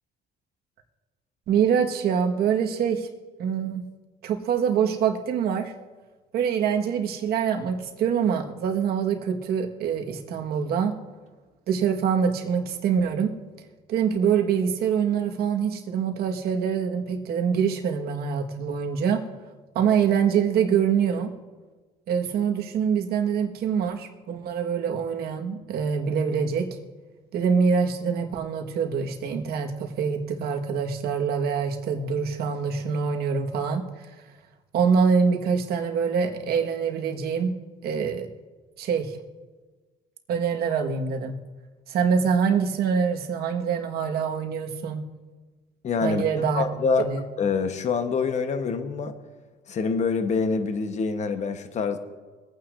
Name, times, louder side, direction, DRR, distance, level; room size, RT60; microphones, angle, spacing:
voice 1, 1.5-3.1 3.4-3.8 4.2-5.7 6.3-10.9 11.7-13.3 13.9-19.2 19.7-21.3 22.1-26.7 27.3-33.8 34.7-37.5 37.8-38.3 38.8-39.2 40.3-41.4 41.9-45.0 46.0-46.6 47.0-47.2, right 7 dB, 70° right, 3 dB, 1.4 m, -25 dB
voice 2, 45.8-46.2 46.5-47.1 47.4-49.2 49.7-52.0, left 5 dB, 45° left, 8 dB, 1.0 m, -25 dB
24.0 x 9.2 x 2.5 m, 1.3 s
cardioid pair, 110°, 17 cm